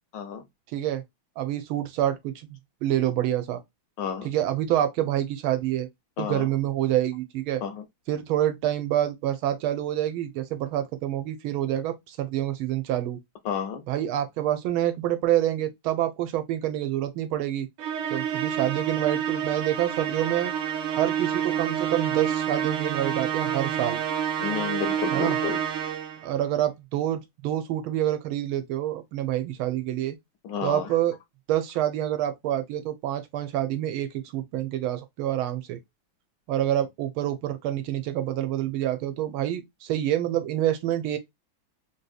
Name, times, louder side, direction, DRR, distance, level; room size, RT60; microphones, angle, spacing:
voice 1, 0.1-0.4 4.0-4.3 6.2-6.5 7.6-7.8 13.4-13.8 24.4-25.6 30.4-30.9, left 7 dB, 75° left, 1.1 m, -31 dB
voice 2, 0.7-1.0 1.4-2.3 2.8-3.6 4.2-5.9 6.2-7.6 8.1-13.2 13.9-17.7 18.1-20.5 21.0-24.0 25.1-25.4 26.2-30.2 30.6-31.1 31.5-35.8 36.5-41.2, right 12 dB, 90° right, 1.5 m, -27 dB
Musical instrument, 17.8-26.3, right 9 dB, 70° right, 1.2 m, -28 dB
3.4 x 2.7 x 2.3 m
omnidirectional pair, 2.2 m